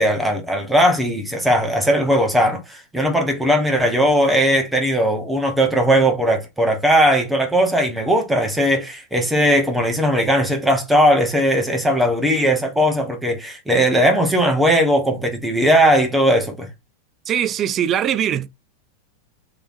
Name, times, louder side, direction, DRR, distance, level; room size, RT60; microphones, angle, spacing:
voice 1, 0.0-16.7, equal, 5° right, 1.1 m, -18 dB
voice 2, 17.3-18.5, right 10 dB, 30° right, 0.3 m, -21 dB
3.3 x 3.0 x 2.5 m
figure-of-eight pair, 90°, 0 cm